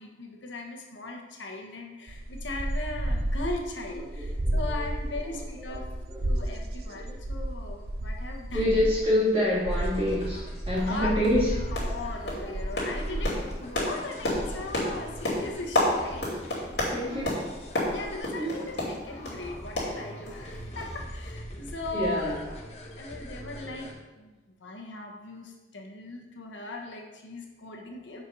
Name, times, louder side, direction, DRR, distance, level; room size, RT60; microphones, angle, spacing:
voice 1, 0.0-5.8 6.2-8.9 10.9-11.1 11.5-16.7 17.1-17.4 17.9-22.3 23.0-28.2, left 2 dB, 85° left, 1 dB, 1.3 m, -38 dB
sound 1, 2.1-15.5 16.0-16.2 16.4-18.2, right 1 dB, 55° right, 0.7 m, -33 dB
voice 2, 4.1-6.5 6.9-7.2 8.5-11.5 13.1-13.2 16.9-17.4 18.4-18.6 21.9-22.4, left 1 dB, 30° right, -9 dB, 2.2 m, -28 dB
sound 2, 9.7-23.9, equal, 35° left, 1.1 m, -44 dB
sound 3, 10.3-10.4 10.8-10.9 11.2-11.5 11.8-12.0 12.3-19.4 19.8-20.5 20.8-20.9 21.3-21.4, left 1 dB, 65° left, 2.7 m, -30 dB
7.2 x 4.7 x 5.5 m, 1.2 s
head